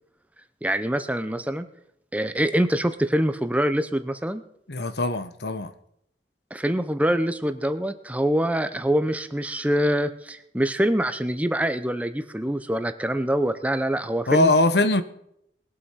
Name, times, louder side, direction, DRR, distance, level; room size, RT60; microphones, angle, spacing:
voice 1, 0.6-1.7 2.1-4.4 6.5-14.5, equal, 10° right, 0.8 m, -24 dB
voice 2, 4.7-5.7 14.3-15.0, left 2 dB, 65° left, 1.1 m, -21 dB
20.5 x 8.2 x 5.8 m
head